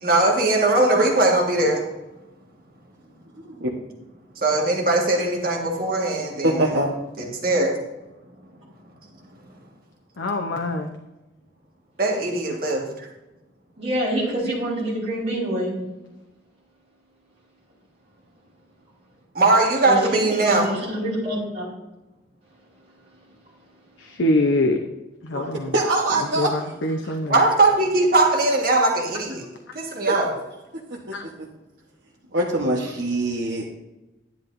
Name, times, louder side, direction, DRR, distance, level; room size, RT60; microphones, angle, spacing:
voice 1, 0.0-1.8 4.4-6.7 7.4-7.7 12.0-12.8 19.3-20.7 27.3-29.4 29.7-30.3, right 2 dB, 50° right, -1 dB, 1.6 m, -20 dB
voice 2, 3.3-3.7 6.4-7.0 25.3-27.1 30.1-30.2 30.9-31.2 32.3-33.6, right 1 dB, 70° right, -4 dB, 1.1 m, -24 dB
voice 3, 10.2-11.0 24.0-24.8 25.2-25.7 26.4-27.4 29.7-29.8 31.1-31.2, left 1 dB, 90° left, 4 dB, 0.7 m, -24 dB
voice 4, 13.8-15.8 19.8-21.7, right 1 dB, 35° right, -7 dB, 3.8 m, -26 dB
11.0 x 10.5 x 2.6 m, 1.0 s
head